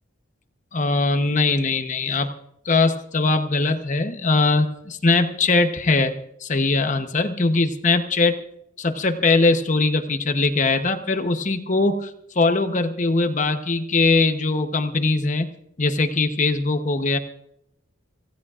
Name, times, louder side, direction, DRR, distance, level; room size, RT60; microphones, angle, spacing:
voice 1, 0.7-2.3 2.6-6.1 6.4-8.4 8.8-15.5 15.8-17.2, left 3 dB, 40° left, 7 dB, 0.9 m, -21 dB
27.0 x 16.0 x 2.5 m, 0.76 s
head